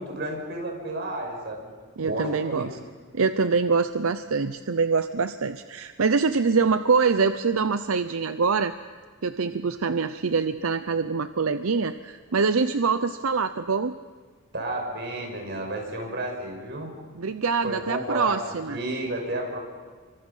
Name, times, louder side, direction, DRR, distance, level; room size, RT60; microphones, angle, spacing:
voice 1, 0.0-1.7 2.0-2.7 14.5-16.9 17.6-19.6, right 1 dB, 50° right, 1 dB, 6.1 m, -31 dB
voice 2, 2.0-2.8 3.1-8.7 9.2-13.9 17.2-18.8, right 4 dB, 85° right, 10 dB, 0.7 m, -24 dB
29.0 x 24.5 x 5.6 m, 1.5 s
head